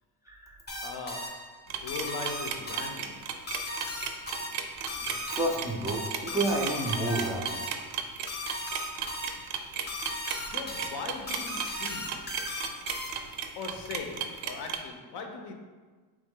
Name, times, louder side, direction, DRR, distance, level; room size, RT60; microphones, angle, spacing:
voice 1, 0.2-0.6 5.0-7.7 10.3-10.5, right 1 dB, 10° right, -3 dB, 0.4 m, -31 dB
sound 1, 0.7-13.4, left 1 dB, 20° left, 0.7 m, -38 dB
voice 2, 0.8-3.3 10.4-12.3 13.6-15.5, left 4 dB, 65° left, 4 dB, 0.7 m, -40 dB
sound 2, 1.7-14.8, right 8 dB, 90° right, 0.6 m, -35 dB
3.5 x 3.1 x 3.6 m, 1.4 s
cardioid pair, 100°, 46 cm